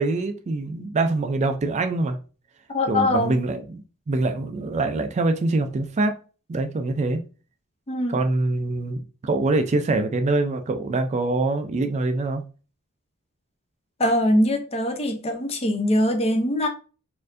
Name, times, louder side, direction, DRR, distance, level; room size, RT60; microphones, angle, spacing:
voice 1, 0.0-2.2 2.9-6.2 6.5-7.2 8.1-12.4, right 2 dB, 30° right, 0.3 m, -24 dB
voice 2, 2.7-3.3 7.9-8.2 14.0-16.7, left 1 dB, 25° left, 0.5 m, -22 dB
4.3 x 2.6 x 2.5 m
head